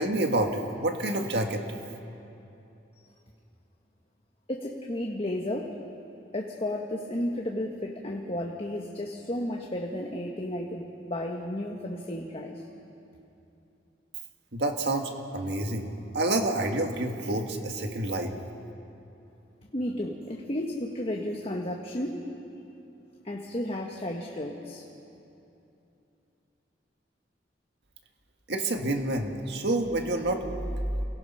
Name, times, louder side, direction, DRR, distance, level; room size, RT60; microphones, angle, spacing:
voice 1, 0.0-1.6 14.5-18.3 28.5-30.4, right 1 dB, 65° right, 4 dB, 1.9 m, -28 dB
voice 2, 4.5-5.8 6.3-12.6 19.7-22.3 23.2-24.8, left 1 dB, 35° left, 0 dB, 1.4 m, -33 dB
29.0 x 18.0 x 5.7 m, 2.9 s
head